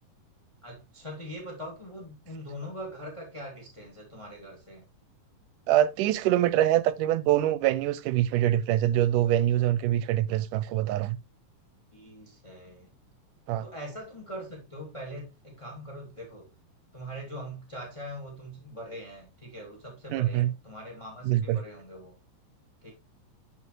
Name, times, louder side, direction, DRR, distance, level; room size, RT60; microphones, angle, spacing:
voice 1, 0.6-4.8 11.9-12.9 13.6-16.5 16.9-22.2 22.8-22.9, equal, 15° left, 1.4 m, -42 dB
voice 2, 5.7-11.2 13.5-13.7 20.1-20.5 21.3-21.6, right 13 dB, 80° right, 2.1 m, -24 dB
11.5 x 5.1 x 3.1 m
omnidirectional pair, 3.8 m